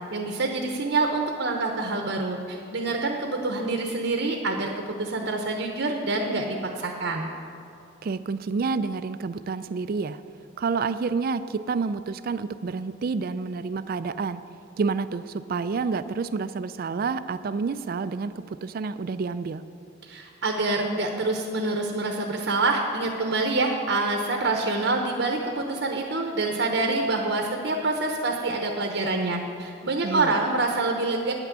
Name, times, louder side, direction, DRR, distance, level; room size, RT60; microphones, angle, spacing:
voice 1, 0.1-7.3 20.0-31.3, right 3 dB, 70° right, 2 dB, 0.9 m, -26 dB
voice 2, 8.0-10.2 10.6-14.4 14.8-19.6 30.0-30.3, right 4 dB, 50° right, 13 dB, 0.3 m, -29 dB
9.9 x 5.9 x 8.1 m, 2.6 s
head